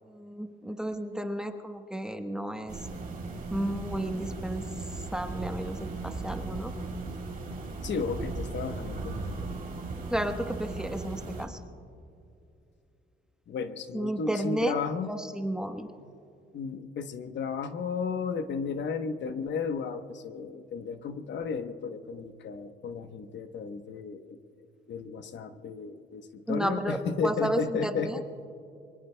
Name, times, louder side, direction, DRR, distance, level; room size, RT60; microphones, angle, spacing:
voice 1, 0.1-2.8 3.5-4.6 5.1-6.7 10.0-11.6 13.9-14.8 15.1-15.9 26.5-28.2, right 1 dB, 5° right, 5 dB, 1.1 m, -32 dB
sound 1, 2.7-11.5, right 3 dB, 45° right, 3.1 m, -37 dB
voice 2, 7.8-9.3 13.5-15.1 16.0-16.1 16.5-24.4 24.9-28.1, left 5 dB, 65° left, 8 dB, 1.0 m, -34 dB
27.0 x 22.5 x 2.2 m, 2.6 s
cardioid pair, 90°, 20 cm